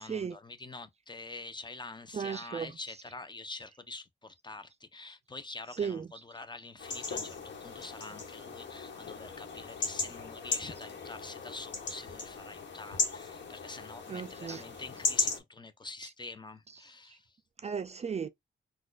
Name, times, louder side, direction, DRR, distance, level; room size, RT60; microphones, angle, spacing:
voice 1, 0.0-17.3, left 3 dB, 25° left, 0.5 m, -46 dB
voice 2, 2.1-2.7 5.8-6.1 14.1-14.6 17.6-18.3, right 6 dB, 35° right, 0.3 m, -35 dB
sound 1, 6.8-15.4, left 4 dB, 65° left, 1.2 m, -37 dB
4.1 x 2.3 x 2.4 m
cardioid pair, 90°, 20 cm